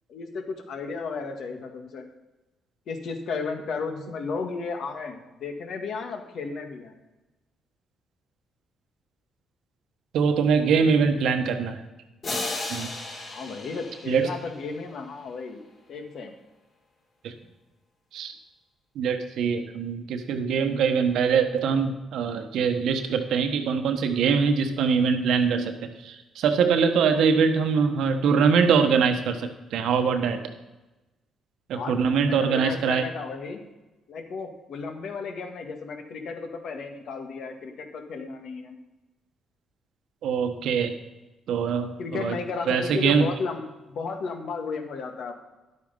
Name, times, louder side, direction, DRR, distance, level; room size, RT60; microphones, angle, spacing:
voice 1, 0.1-2.0 2.9-6.9 13.3-15.6 15.9-16.3 31.7-33.6 34.1-38.8 42.0-45.3, left 4 dB, 65° left, 5 dB, 1.7 m, -34 dB
voice 2, 10.1-11.8 12.7-12.9 14.1-14.3 17.2-17.3 18.1-18.3 18.9-30.4 31.7-33.0 40.2-41.0 41.5-42.3 42.7-43.3, right 6 dB, 80° right, 6 dB, 1.2 m, -23 dB
sound 1, 12.2-14.9, left 2 dB, 45° left, 3.4 m, -34 dB
11.5 x 8.3 x 5.3 m, 1.1 s
cardioid pair, 90°, 0 cm